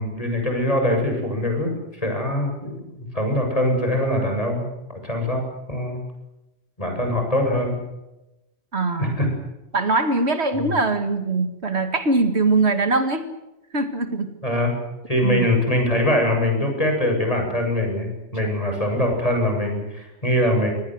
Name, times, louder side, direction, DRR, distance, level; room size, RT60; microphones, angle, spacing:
voice 1, 0.0-6.0 6.8-7.8 9.0-9.3 10.6-10.7 14.4-14.7 15.1-20.7, left 1 dB, 30° left, 3 dB, 7.6 m, -23 dB
voice 2, 8.7-9.2 9.7-13.3 13.7-14.3 15.2-15.5, right 3 dB, 70° right, 8 dB, 2.3 m, -22 dB
25.5 x 19.5 x 7.8 m, 0.94 s
omnidirectional pair, 1.2 m